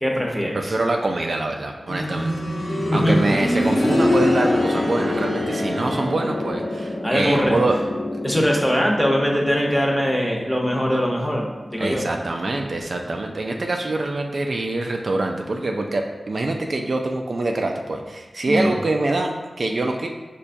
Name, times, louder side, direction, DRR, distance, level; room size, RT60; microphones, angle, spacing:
voice 1, 0.0-0.7 2.9-3.1 7.0-7.5 8.2-11.4 11.7-12.0 18.4-18.8, equal, 5° left, -1 dB, 0.8 m, -21 dB
voice 2, 0.5-2.3 2.6-7.8 11.8-20.1, right 2 dB, 70° right, 2 dB, 0.3 m, -25 dB
sound 1, 1.9-12.6 12.9-13.0 13.9-14.0, left 1 dB, 55° left, 0.9 m, -25 dB
5.6 x 2.2 x 2.5 m, 1.2 s
cardioid pair, 50°, 0 cm